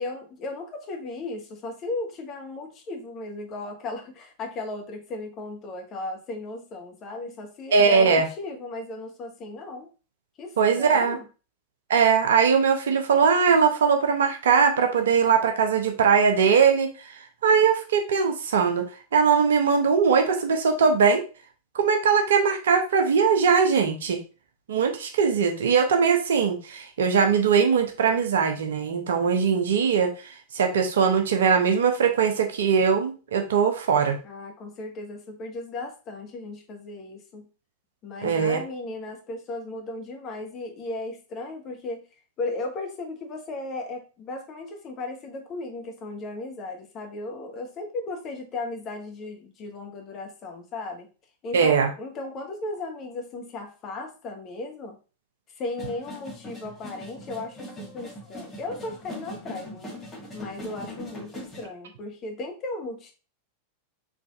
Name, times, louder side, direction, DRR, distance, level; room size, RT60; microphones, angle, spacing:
voice 1, 0.0-9.9 10.4-11.3 34.2-37.5 38.0-42.0 42.4-51.1 51.4-55.0 55.5-60.0 60.3-63.1, left 2 dB, 30° left, 3 dB, 0.9 m, -36 dB
voice 2, 7.7-8.3 10.6-11.2 11.9-16.9 17.4-18.8 19.1-21.2 21.7-24.2 24.7-34.2 38.2-38.6 51.5-51.9, right 6 dB, 60° right, 4 dB, 0.7 m, -21 dB
sound 1, 55.8-61.7, equal, 15° left, 1.6 m, -41 dB
3.7 x 3.3 x 2.4 m, 0.33 s
figure-of-eight pair, 90°, 0 cm